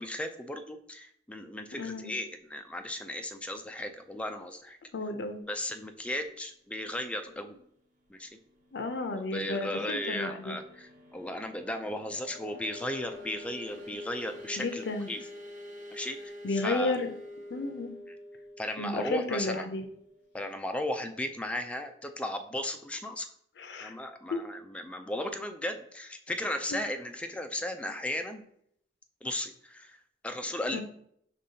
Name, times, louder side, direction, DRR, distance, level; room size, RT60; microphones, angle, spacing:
voice 1, 0.0-4.8 5.5-7.6 8.1-8.3 9.3-15.2 15.9-17.0 18.6-19.7 20.3-23.3 23.8-28.4 29.2-30.0 30.2-30.8, left 1 dB, 5° left, 6 dB, 0.3 m, -36 dB
voice 2, 1.7-2.1 4.9-5.4 8.7-10.6 14.6-15.1 16.4-17.1 17.5-18.0 18.8-19.8 23.6-23.9 24.3-24.4 30.7-30.8, left 2 dB, 70° left, 7 dB, 0.5 m, -32 dB
sound 1, 8.2-20.8, left 1 dB, 45° right, 0.7 m, -47 dB
5.3 x 3.1 x 2.7 m, 0.69 s
head